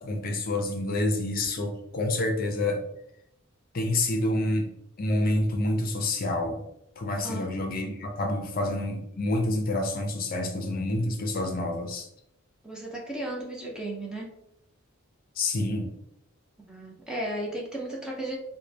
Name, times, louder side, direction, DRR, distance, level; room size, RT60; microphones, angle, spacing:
voice 1, 0.0-2.8 3.7-4.7 5.0-6.6 7.0-12.1 15.4-16.0, left 1 dB, 45° left, 3 dB, 0.5 m, -28 dB
voice 2, 12.6-14.3 16.6-18.4, right 1 dB, 5° right, -3 dB, 0.5 m, -35 dB
4.0 x 2.1 x 3.2 m, 0.79 s
head